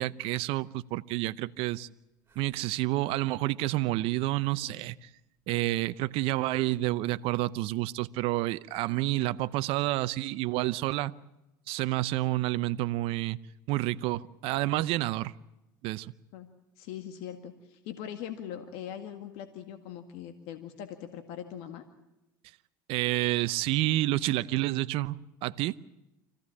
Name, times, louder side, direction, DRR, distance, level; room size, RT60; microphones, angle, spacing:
voice 1, 0.0-1.9 2.4-5.0 5.5-11.1 11.7-13.4 13.7-15.3 15.8-16.1 22.9-25.2 25.4-25.8, right 17 dB, 60° right, 15 dB, 0.8 m, -29 dB
sound 1, 2.3-3.5 4.4-5.0 6.5-7.2 8.7-9.5, equal, 20° right, 4.3 m, -57 dB
voice 2, 16.8-21.8, left 9 dB, 65° left, 8 dB, 1.9 m, -41 dB
25.5 x 16.0 x 8.6 m, 0.93 s
hypercardioid pair, 85°, 11 cm